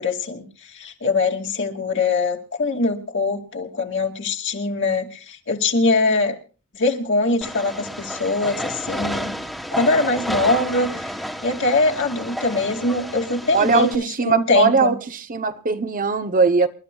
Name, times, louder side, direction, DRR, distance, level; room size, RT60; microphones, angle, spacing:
voice 1, 0.0-6.3 6.7-9.4 9.7-11.2 11.4-14.9, left 3 dB, 55° left, 2.3 m, -22 dB
Train, 7.4-13.9, equal, ahead, 1.4 m, -31 dB
voice 2, 13.5-16.7, right 4 dB, 35° right, 0.7 m, -20 dB
28.5 x 12.5 x 2.3 m
head